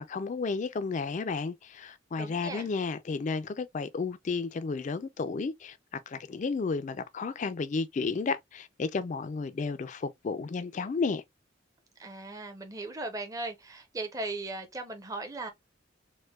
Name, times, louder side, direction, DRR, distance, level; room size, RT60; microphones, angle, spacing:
voice 1, 0.0-11.2, left 4 dB, 40° left, 0.3 m, -32 dB
voice 2, 2.2-2.7 12.0-15.5, right 2 dB, 20° right, 0.6 m, -38 dB
4.4 x 2.1 x 2.2 m
head